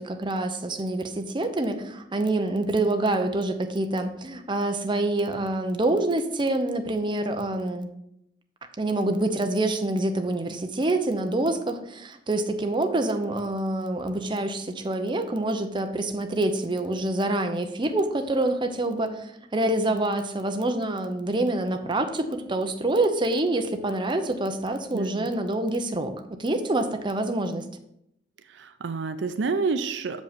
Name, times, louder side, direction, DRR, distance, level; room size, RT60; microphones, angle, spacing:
voice 1, 0.0-7.9 8.8-19.3 19.5-26.1 26.4-27.6, right 2 dB, 25° right, 6 dB, 0.7 m, -26 dB
voice 2, 24.9-25.3 28.5-30.2, right 4 dB, 70° right, 10 dB, 0.5 m, -28 dB
6.9 x 5.2 x 5.1 m, 0.78 s
head